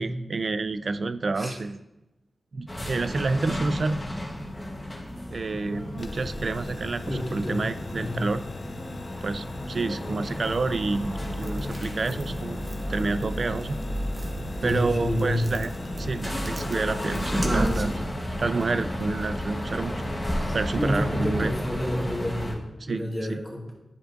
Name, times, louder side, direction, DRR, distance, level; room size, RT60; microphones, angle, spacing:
voice 1, 0.0-1.8 2.5-4.0 5.3-8.4 9.2-12.6 12.9-13.8 14.6-15.7 16.0-18.0 18.4-19.9 20.5-21.5 22.8-23.4, right 3 dB, 55° right, 13 dB, 0.4 m, -29 dB
sound 1, 2.7-22.5, equal, 20° left, 1.4 m, -33 dB
sound 2, 6.0-18.0, left 3 dB, 55° left, 0.5 m, -40 dB
voice 2, 7.1-7.6 7.9-8.3 9.1-9.2 14.6-15.6 20.3-23.7, left 1 dB, 5° left, -4 dB, 2.2 m, -29 dB
sound 3, 10.4-17.8, equal, 35° right, 1.0 m, -33 dB
10.5 x 5.1 x 2.6 m, 0.96 s
cardioid pair, 70°, 0 cm